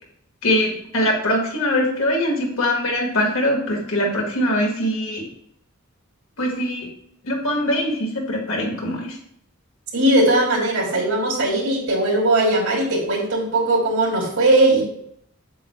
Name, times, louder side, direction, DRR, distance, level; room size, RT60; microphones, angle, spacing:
voice 1, 0.4-5.2 6.4-6.9 7.2-9.2, left 1 dB, 75° left, -1 dB, 2.0 m, -22 dB
voice 2, 9.9-14.8, right 1 dB, 85° right, -1 dB, 2.9 m, -19 dB
7.9 x 7.6 x 2.4 m, 0.72 s
head